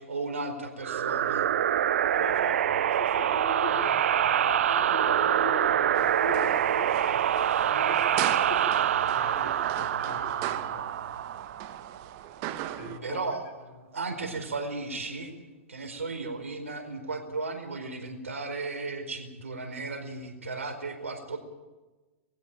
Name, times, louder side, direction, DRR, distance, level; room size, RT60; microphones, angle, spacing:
voice 1, 0.0-1.5 13.0-13.5 13.9-15.3 15.7-21.4, right 3 dB, 90° right, 4.7 m, -35 dB
sound 1, 0.8-12.2, right 10 dB, 75° right, 0.6 m, -26 dB
voice 2, 2.1-11.2 12.7-13.4 13.7-13.9, left 5 dB, 60° left, 4.5 m, -41 dB
sound 2, 5.9-13.0, right 12 dB, 45° right, 1.6 m, -39 dB
21.5 x 15.5 x 9.0 m
hypercardioid pair, 120°, 7 cm